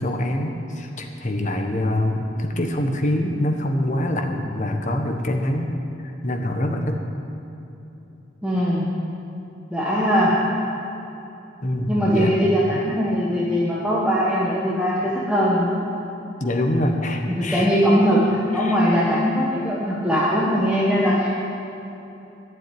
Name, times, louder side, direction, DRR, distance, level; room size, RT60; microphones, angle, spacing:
voice 1, 0.0-5.7 6.0-7.0 11.6-12.3 15.0-15.1 16.4-17.7 18.5-19.0, left 1 dB, 40° left, 3 dB, 1.3 m, -25 dB
voice 2, 8.4-8.9 9.7-10.3 11.9-15.8 17.3-21.3, equal, 5° right, -7 dB, 1.4 m, -20 dB
12.0 x 7.7 x 9.7 m, 2.9 s
head